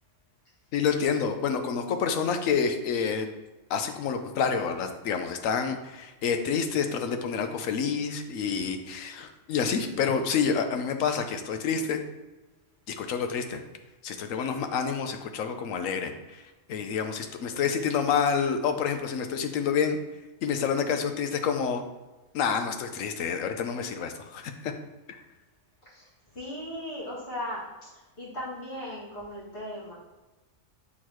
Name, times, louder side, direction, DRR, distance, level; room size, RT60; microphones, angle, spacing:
voice 1, 0.7-3.3 3.7-12.0 12.9-13.6 14.0-20.0 20.4-21.8 22.3-24.7, left 6 dB, 85° left, 7 dB, 1.1 m, -28 dB
voice 2, 17.5-17.9 25.8-29.9, left 1 dB, 60° left, -8 dB, 2.5 m, -38 dB
8.3 x 4.0 x 3.0 m, 1.1 s
omnidirectional pair, 1.3 m